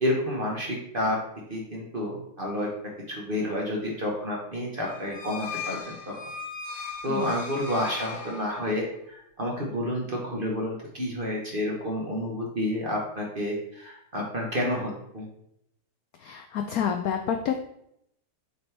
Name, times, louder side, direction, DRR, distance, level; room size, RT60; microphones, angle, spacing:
voice 1, 0.0-1.2 1.5-2.7 3.1-6.2 7.0-15.3, left 1 dB, 35° right, -2 dB, 0.9 m, -30 dB
sound 1, 4.8-8.9, left 5 dB, 50° left, 1.1 m, -38 dB
voice 2, 16.2-17.6, left 8 dB, 75° left, 5 dB, 0.8 m, -28 dB
6.9 x 4.3 x 3.3 m, 0.75 s
omnidirectional pair, 2.1 m